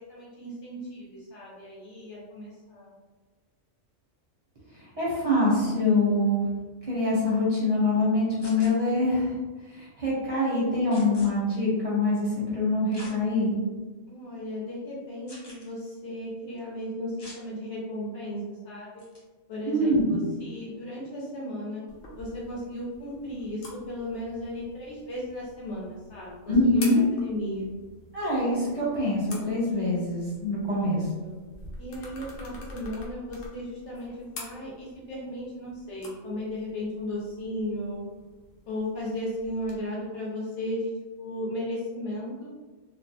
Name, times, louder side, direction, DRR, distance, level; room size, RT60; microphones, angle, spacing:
voice 1, 0.1-2.9 14.1-19.0 19.5-21.8 22.1-27.7 30.7-31.4 31.8-38.0 38.7-40.9 41.2-42.5, left 1 dB, 65° left, -7 dB, 1.0 m, -35 dB
voice 2, 4.7-6.5 6.8-9.4 9.7-13.6 19.7-20.0 26.5-27.0 28.1-31.0, left 1 dB, 35° right, -8 dB, 0.6 m, -24 dB
sound 1, 8.4-8.7 10.9-11.3 12.9-13.1 13.8-13.9 15.3-15.7 17.2-17.4 19.0-19.2, left 1 dB, 35° left, 0.4 m, -45 dB
sound 2, 21.9-39.7, left 1 dB, 85° left, 1.0 m, -47 dB
2.4 x 2.1 x 2.7 m, 1.3 s
omnidirectional pair, 1.4 m